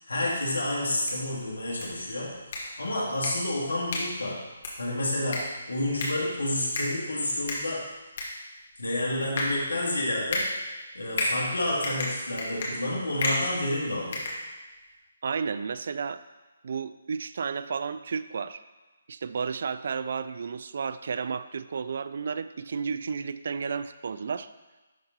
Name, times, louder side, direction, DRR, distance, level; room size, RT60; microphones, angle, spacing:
voice 1, 0.1-4.4 4.8-5.4 5.7-7.8 8.8-10.4 10.9-14.2, left 1 dB, 90° left, -4 dB, 2.3 m, -29 dB
sound 1, 0.8-15.0, left 2 dB, 50° left, 2.1 m, -35 dB
voice 2, 15.2-16.2 16.6-18.6 19.1-24.5, right 5 dB, 60° right, 13 dB, 0.3 m, -32 dB
11.5 x 4.1 x 4.0 m, 1.2 s
hypercardioid pair, 155°, 0 cm